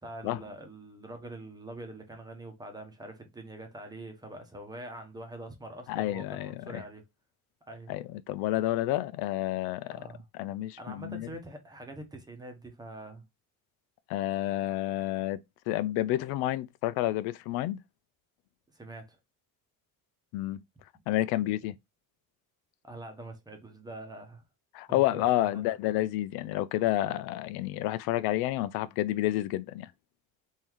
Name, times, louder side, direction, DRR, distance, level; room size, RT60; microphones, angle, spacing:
voice 1, 0.0-7.0 7.7-7.9 9.9-10.3 10.8-13.2 18.7-19.2 21.4-21.5 22.8-24.4 24.9-25.8, right 1 dB, 10° right, 0.9 m, -44 dB
voice 2, 5.9-6.8 7.9-10.0 10.4-11.3 14.1-15.4 15.7-17.8 20.3-20.6 21.1-21.7 24.7-29.9, left 15 dB, 90° left, 0.5 m, -30 dB
3.7 x 2.7 x 3.0 m
cardioid pair, 135°, 37 cm